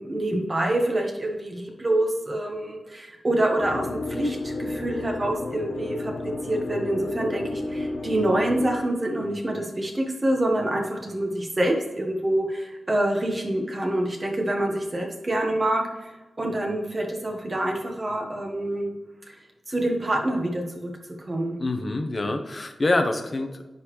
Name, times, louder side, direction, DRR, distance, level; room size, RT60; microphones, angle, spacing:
voice 1, 0.0-6.1 6.4-18.9 19.3-19.4 19.7-20.9 21.3-21.6, right 1 dB, 30° right, 1 dB, 1.5 m, -26 dB
sound 1, 3.6-8.8, left 2 dB, 60° left, 0.8 m, -32 dB
voice 2, 21.6-23.6, left 2 dB, 35° left, 6 dB, 0.9 m, -26 dB
10.0 x 4.1 x 3.2 m, 1.1 s
wide cardioid pair, 85°, 0 cm